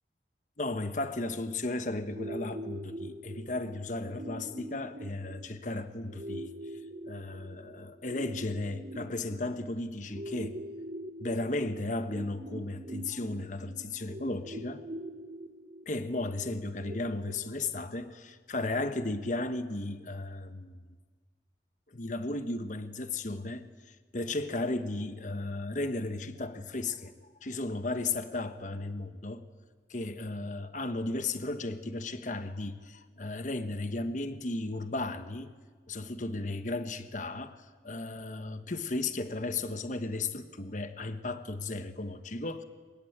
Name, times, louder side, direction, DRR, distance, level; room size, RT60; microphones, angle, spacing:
voice 1, 0.6-6.8 7.1-10.6 11.2-14.8 15.9-20.8 21.9-27.1 27.4-29.4 29.9-35.5 35.9-42.6, left 2 dB, 45° left, 9 dB, 1.2 m, -35 dB
sound 1, 2.1-18.1, right 1 dB, 45° right, 1.9 m, -44 dB
24.5 x 22.0 x 8.8 m, 1.5 s
head